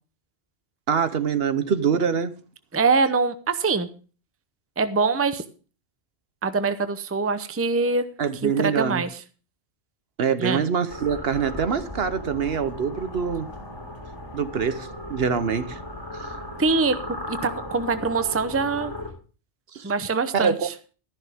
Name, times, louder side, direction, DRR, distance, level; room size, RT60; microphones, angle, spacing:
voice 1, 0.9-2.3 8.2-9.0 10.2-13.5 14.3-15.8 16.2-16.3 19.7-19.9 20.3-20.6, right 6 dB, 65° right, 1.1 m, -24 dB
voice 2, 2.7-3.9 4.8-5.4 6.4-8.1 8.4-9.2 10.4-10.6 16.6-17.0 17.3-18.9 19.8-20.7, right 4 dB, 15° right, 0.6 m, -24 dB
sound 1, 10.9-19.1, left 1 dB, 25° left, 3.3 m, -36 dB
13.0 x 11.0 x 3.5 m
omnidirectional pair, 1.1 m